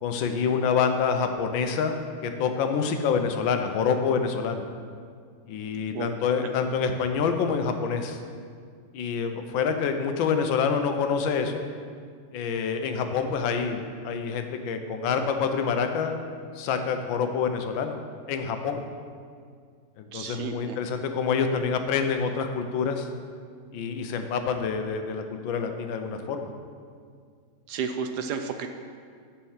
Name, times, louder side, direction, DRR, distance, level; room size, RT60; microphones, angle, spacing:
voice 1, 0.0-4.6 5.5-8.2 8.9-11.6 12.3-16.2 16.5-18.0 18.3-18.8 20.0-23.1 23.7-26.5, left 6 dB, 85° left, 6 dB, 1.5 m, -27 dB
voice 2, 20.1-20.8 27.7-28.7, right 6 dB, 70° right, 7 dB, 1.0 m, -32 dB
10.0 x 4.5 x 7.2 m, 2.1 s
omnidirectional pair, 2.0 m